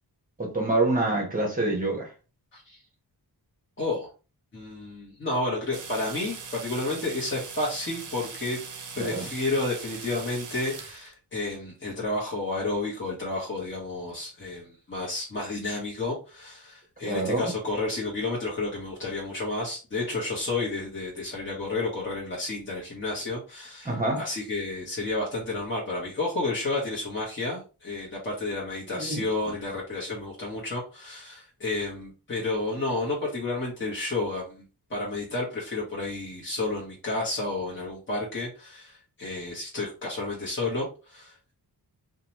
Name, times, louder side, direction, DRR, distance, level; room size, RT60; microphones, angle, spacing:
voice 1, 0.4-2.1 9.0-9.3 17.0-17.5 23.8-24.2 28.9-29.2, right 2 dB, 20° right, 0.9 m, -26 dB
voice 2, 3.8-4.1 4.5-8.6 8.9-34.6 34.9-41.5, left 2 dB, 30° left, 1.0 m, -31 dB
sound 1, 5.7-11.1, right 5 dB, 50° right, 0.6 m, -41 dB
2.8 x 2.3 x 2.9 m
wide cardioid pair, 100°, 39 cm